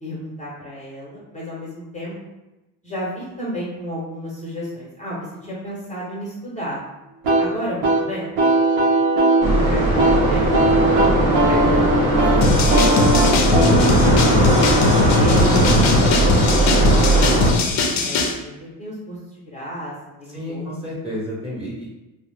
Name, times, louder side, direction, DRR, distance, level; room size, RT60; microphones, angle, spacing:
voice 1, 0.0-2.1 2.8-6.8 7.4-8.3 9.6-10.5 11.4-12.2 12.5-14.4 15.2-19.9 20.2-20.7, equal, 15° left, -6 dB, 0.8 m, -33 dB
sound 1, 7.2-15.8, right 2 dB, 75° right, 0.8 m, -20 dB
sound 2, 9.4-17.5, right 1 dB, 50° right, 1.0 m, -18 dB
sound 3, 12.4-18.3, left 3 dB, 40° left, 0.5 m, -19 dB
voice 2, 20.3-21.9, equal, 15° right, -6 dB, 0.9 m, -30 dB
2.4 x 2.0 x 3.3 m, 1.0 s
supercardioid pair, 95°, 43 cm